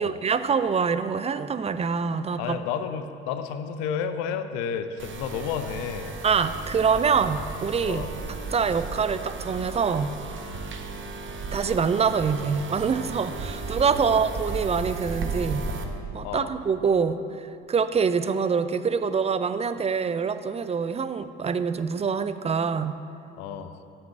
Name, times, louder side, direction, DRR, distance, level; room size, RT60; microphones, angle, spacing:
voice 1, 0.0-2.6 6.2-8.0 8.5-10.1 11.5-15.6 16.1-23.0, right 6 dB, 20° right, 12 dB, 0.5 m, -25 dB
voice 2, 2.4-6.1 7.8-8.1 14.1-14.2 16.2-16.5 23.4-23.7, left 7 dB, 65° left, 9 dB, 0.6 m, -31 dB
sound 1, 5.0-15.8, right 3 dB, 40° right, 1.0 m, -35 dB
7.4 x 6.1 x 7.3 m, 2.6 s
figure-of-eight pair, 55°, 30 cm